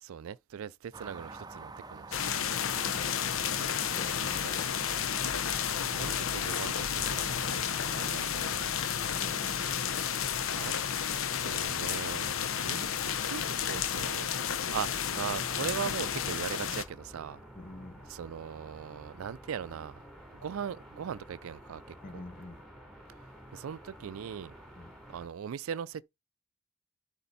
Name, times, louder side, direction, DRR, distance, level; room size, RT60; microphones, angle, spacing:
voice 1, 0.0-2.3 4.2-4.5 5.9-8.7 10.5-10.7 11.4-14.3 14.7-17.4 18.1-20.0 20.4-21.8 22.1-22.2 23.5-24.5 25.1-26.0, right 7 dB, 80° right, 0.4 m, -39 dB
sound 1, 0.9-9.6, right 3 dB, 20° right, 0.6 m, -49 dB
sound 2, 2.1-16.8, left 8 dB, 75° left, 0.8 m, -32 dB
voice 2, 2.9-3.4 3.8-4.9 9.1-9.6 12.6-12.9 17.5-18.1 22.0-22.6 24.8-24.9, left 2 dB, 40° left, 0.9 m, -47 dB
sound 3, 15.0-25.3, equal, ahead, 3.1 m, -51 dB
11.0 x 4.4 x 4.0 m
head